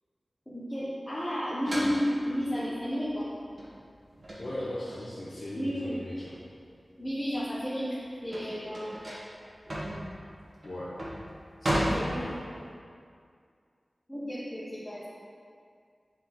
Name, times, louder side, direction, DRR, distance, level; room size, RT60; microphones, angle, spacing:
voice 1, 0.5-3.3 5.5-6.0 7.0-8.0 8.2-9.1 11.7-12.6 14.1-15.0, equal, 15° left, -9 dB, 1.2 m, -32 dB
sound 1, 1.7-6.7 7.1-12.7, equal, 55° right, 1.4 m, -35 dB
voice 2, 4.4-6.3 10.6-10.9 11.6-12.4, left 1 dB, 70° left, -10 dB, 1.1 m, -38 dB
7.3 x 4.5 x 3.8 m, 2.2 s
wide cardioid pair, 70°, 0 cm